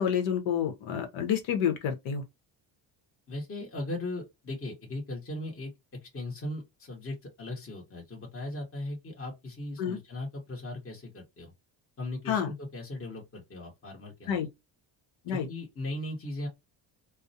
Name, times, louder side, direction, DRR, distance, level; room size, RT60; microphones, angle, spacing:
voice 1, 0.0-2.2 9.8-10.0 12.3-12.5 14.3-14.5 15.3-15.5, left 8 dB, 80° left, 0.9 m, -28 dB
voice 2, 3.3-5.7 6.0-11.5 12.0-14.4 15.3-16.5, left 2 dB, 25° left, 1.1 m, -38 dB
2.3 x 2.1 x 2.6 m
cardioid pair, 90°, 48 cm